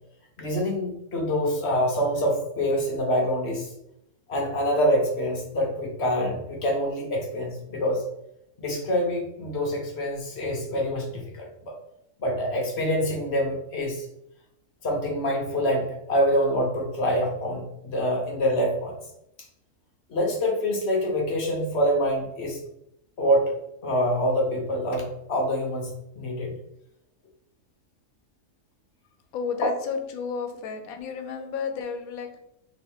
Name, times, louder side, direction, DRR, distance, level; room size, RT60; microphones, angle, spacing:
voice 1, 0.4-3.7 4.3-8.0 8.6-11.7 12.2-14.0 14.8-19.0 20.1-22.6 23.2-23.5 23.8-25.9 26.2-26.5 29.6-29.7, equal, 55° left, 0 dB, 1.0 m, -25 dB
voice 2, 29.3-32.4, left 6 dB, 90° left, 7 dB, 1.1 m, -32 dB
3.6 x 2.9 x 3.5 m, 0.79 s
omnidirectional pair, 1.5 m